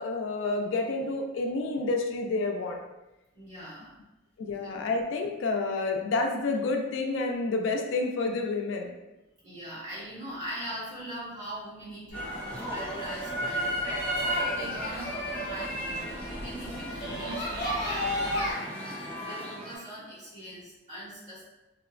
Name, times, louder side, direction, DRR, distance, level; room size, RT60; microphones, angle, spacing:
voice 1, 0.0-2.8 4.4-8.9, left 3 dB, 70° left, 3 dB, 0.3 m, -29 dB
voice 2, 3.3-4.0 4.6-4.7 9.4-14.0 14.4-18.7 19.2-21.5, right 1 dB, 40° right, -10 dB, 1.4 m, -41 dB
sound 1, 12.1-18.5, equal, 35° left, 1.0 m, -35 dB
sound 2, 12.1-19.8, equal, 5° left, 0.7 m, -34 dB
2.9 x 2.1 x 2.4 m, 0.99 s
head